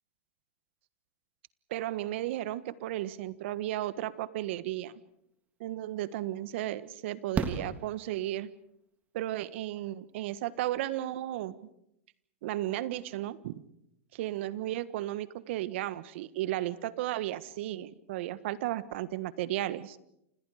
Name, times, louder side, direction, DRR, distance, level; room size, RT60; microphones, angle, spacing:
voice 1, 1.7-4.9 5.6-8.5 9.1-11.5 12.4-13.6 14.1-20.0, right 14 dB, 60° right, 15 dB, 1.4 m, -34 dB
Fireworks, 5.7-5.8 7.3-8.7 10.4-10.5 10.7-10.8, right 5 dB, 20° right, 3.3 m, -34 dB
30.0 x 27.5 x 5.0 m, 0.78 s
hypercardioid pair, 110°, 7 cm